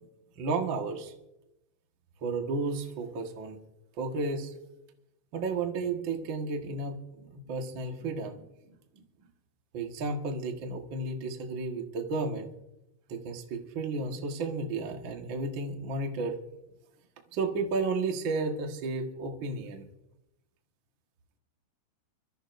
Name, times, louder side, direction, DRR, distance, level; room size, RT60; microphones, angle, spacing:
voice 1, 0.4-1.1 2.2-3.6 4.0-4.5 5.3-8.4 8.9-9.0 9.7-12.5 13.1-16.3 17.3-19.8, right 3 dB, 75° right, 3 dB, 1.1 m, -33 dB
26.0 x 14.0 x 2.6 m, 0.89 s
omnidirectional pair, 4.8 m